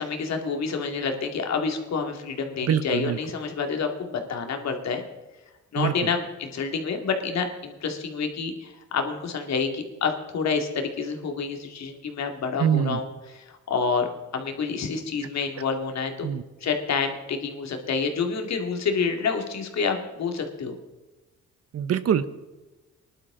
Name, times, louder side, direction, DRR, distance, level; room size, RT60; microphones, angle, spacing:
voice 1, 0.0-5.0 5.7-14.1 14.3-16.3 16.6-20.8, left 5 dB, 60° left, 4 dB, 2.3 m, -28 dB
voice 2, 2.7-3.2 5.8-5.9 12.6-13.0 16.2-16.4 21.7-22.3, right 8 dB, 55° right, 14 dB, 0.9 m, -23 dB
19.0 x 11.5 x 3.8 m, 1.2 s
cardioid pair, 90°, 30 cm